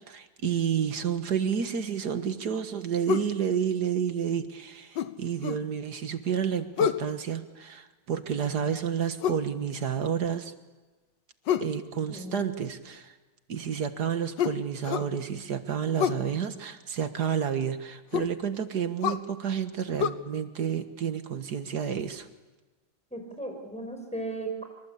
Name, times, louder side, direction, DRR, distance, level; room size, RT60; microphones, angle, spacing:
voice 1, 0.1-10.5 11.6-13.1 13.5-22.3, right 8 dB, 60° right, 9 dB, 2.0 m, -30 dB
sound 1, 3.1-3.3 5.0-5.7 6.8-7.1 9.2-9.5 11.5-11.8 14.4-15.1 16.0-16.3 18.1-18.4 19.0-19.3 20.0-20.1, left 9 dB, 70° left, 1.7 m, -28 dB
voice 2, 12.1-12.5 23.1-24.6, right 2 dB, 5° left, 3 dB, 5.6 m, -36 dB
26.5 x 25.0 x 8.5 m, 1.2 s
omnidirectional pair, 2.1 m